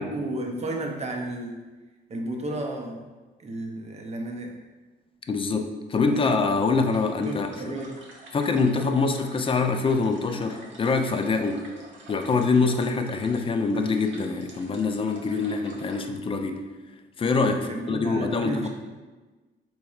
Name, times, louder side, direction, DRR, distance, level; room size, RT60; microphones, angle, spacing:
voice 1, 0.0-1.6 2.1-3.0 3.4-4.6 6.0-6.4 7.2-7.9 17.5-18.7, right 1 dB, 35° right, 2 dB, 0.6 m, -33 dB
voice 2, 5.3-7.5 8.3-11.7 12.1-16.6 17.2-18.7, left 4 dB, 25° left, 6 dB, 0.3 m, -24 dB
sound 1, 6.8-16.1, right 2 dB, 70° right, 0.8 m, -47 dB
4.1 x 3.1 x 2.4 m, 1.2 s
cardioid pair, 90°, 20 cm